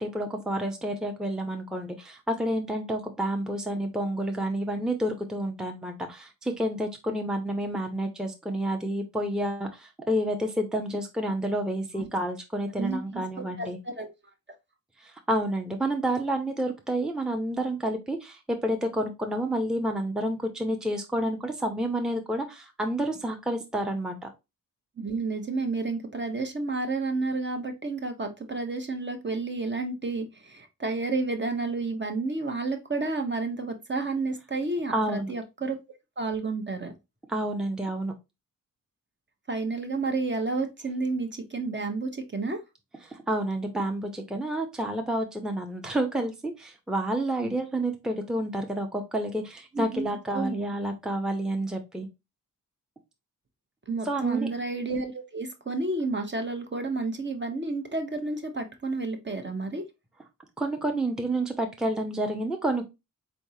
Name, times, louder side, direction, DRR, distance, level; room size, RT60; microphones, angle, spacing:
voice 1, 0.0-13.8 15.0-24.3 34.9-35.3 37.3-38.1 43.0-52.1 54.0-54.5 60.6-62.8, right 1 dB, ahead, 4 dB, 0.7 m, -29 dB
voice 2, 12.8-13.2 13.6-14.1 25.0-35.8 36.2-36.9 39.5-42.6 47.4-47.5 49.7-50.6 53.9-59.8, right 3 dB, 35° right, 5 dB, 0.8 m, -31 dB
4.0 x 3.4 x 2.7 m, 0.23 s
cardioid pair, 70°, 34 cm